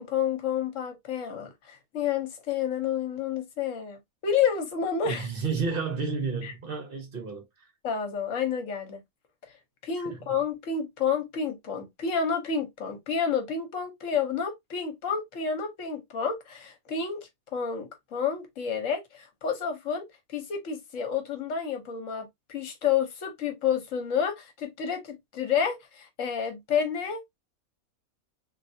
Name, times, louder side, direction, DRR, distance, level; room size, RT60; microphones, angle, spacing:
voice 1, 0.0-5.3 6.4-6.5 7.8-9.0 9.8-27.4, left 7 dB, 65° left, 1.3 m, -30 dB
voice 2, 5.0-7.7 10.0-10.2, right 5 dB, 50° right, 0.8 m, -31 dB
3.2 x 2.6 x 2.6 m
omnidirectional pair, 1.5 m